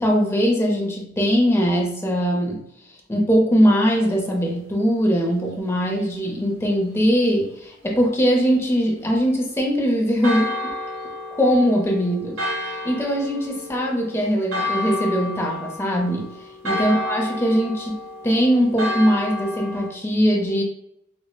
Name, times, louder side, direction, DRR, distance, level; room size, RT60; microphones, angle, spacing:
voice 1, 0.0-2.6 3.1-10.7 11.4-16.3 16.6-20.6, equal, 15° left, 0 dB, 0.5 m, -21 dB
Church bell, 10.2-19.9, left 1 dB, 80° right, 0.7 m, -30 dB
4.4 x 2.0 x 2.2 m, 0.80 s
head